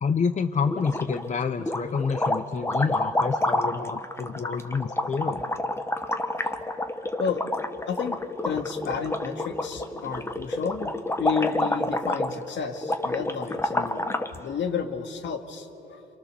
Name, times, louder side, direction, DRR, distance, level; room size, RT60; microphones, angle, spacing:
voice 1, 0.0-5.5, left 5 dB, 35° left, 9 dB, 0.9 m, -28 dB
sound 1, 0.7-1.3 1.6-14.4, left 1 dB, 15° left, 1.3 m, -29 dB
voice 2, 7.8-10.9 11.2-16.0, left 6 dB, 70° left, 5 dB, 2.1 m, -32 dB
27.5 x 27.0 x 6.8 m, 3.0 s
cardioid pair, 90°, 20 cm